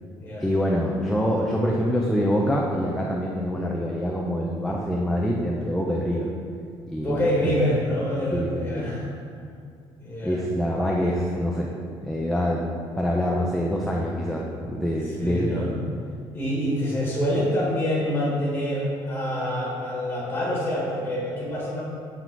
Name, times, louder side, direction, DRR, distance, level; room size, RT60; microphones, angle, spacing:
voice 1, 0.4-6.3 6.9-7.5 8.3-8.9 10.2-11.7 12.0-12.6 13.0-15.6, equal, 5° left, -2 dB, 0.5 m, -25 dB
voice 2, 7.0-9.1 10.0-10.4 15.0-15.8 16.3-21.8, equal, 20° left, -5 dB, 1.4 m, -26 dB
8.1 x 3.7 x 4.5 m, 2.2 s
cardioid pair, 160°, 10 cm